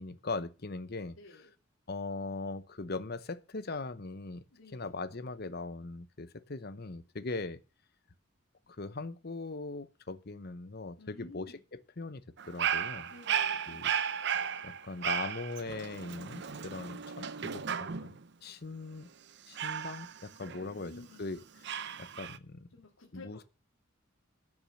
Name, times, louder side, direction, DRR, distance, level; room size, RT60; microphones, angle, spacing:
voice 1, 0.0-1.2 1.9-4.4 4.7-7.6 8.7-13.1 13.7-13.9 14.6-19.1 19.5-21.4 22.0-22.7 23.1-23.4, left 3 dB, 50° left, 0.9 m, -40 dB
voice 2, 1.2-1.5 4.5-4.9 11.0-11.6 13.1-13.7 20.7-21.2 22.7-23.4, left 2 dB, 75° left, 2.1 m, -52 dB
Dog, 12.4-18.2 19.6-21.0 21.6-22.4, right 8 dB, 55° right, 0.6 m, -35 dB
13.0 x 6.2 x 6.4 m
head